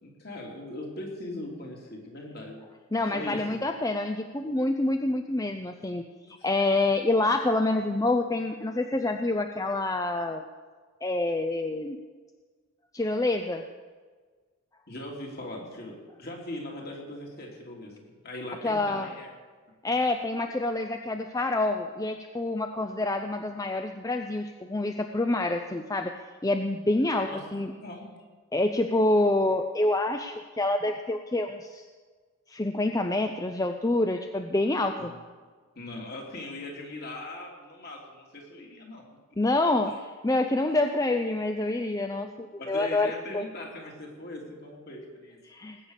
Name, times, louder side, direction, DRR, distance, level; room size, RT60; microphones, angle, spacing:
voice 1, 0.0-2.6 3.1-3.6 6.3-6.5 14.9-19.3 27.3-28.1 35.0-35.1 35.7-39.0 42.6-45.4, left 1 dB, 45° left, -1 dB, 3.1 m, -40 dB
voice 2, 2.9-10.4 11.0-12.0 12.9-13.6 18.6-19.1 19.8-26.2 26.4-27.7 28.5-31.9 32.5-35.1 39.4-43.4 45.5-45.8, left 2 dB, 15° left, 6 dB, 0.5 m, -27 dB
19.5 x 8.8 x 6.6 m, 1.5 s
head